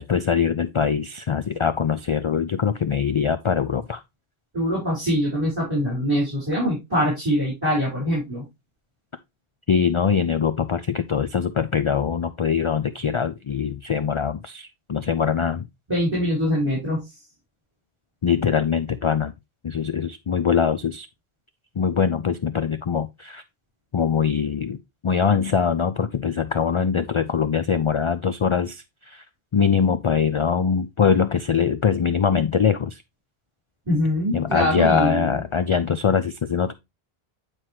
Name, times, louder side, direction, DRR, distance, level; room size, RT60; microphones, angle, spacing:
voice 1, 0.0-4.0 9.7-15.7 18.2-19.3 19.6-21.1 21.8-23.4 23.9-24.8 25.0-29.2 29.5-33.0 34.3-36.7, left 6 dB, 55° left, 0.3 m, -22 dB
voice 2, 4.5-8.4 15.9-17.1 33.9-35.3, equal, 25° right, 4.8 m, -23 dB
9.5 x 4.5 x 3.0 m
omnidirectional pair, 1.0 m